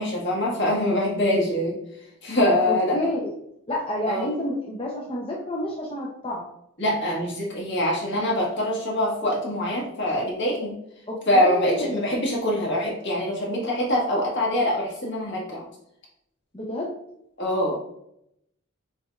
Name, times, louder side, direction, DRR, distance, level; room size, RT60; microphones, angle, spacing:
voice 1, 0.0-1.8 2.2-3.0 4.1-4.3 6.8-10.7 11.3-15.6 17.4-17.7, left 1 dB, 55° left, -3 dB, 1.6 m, -24 dB
voice 2, 2.6-3.3 3.7-6.5 11.1-12.1 16.5-16.9, left 1 dB, 25° left, -4 dB, 0.6 m, -29 dB
6.0 x 3.2 x 2.3 m, 0.76 s
head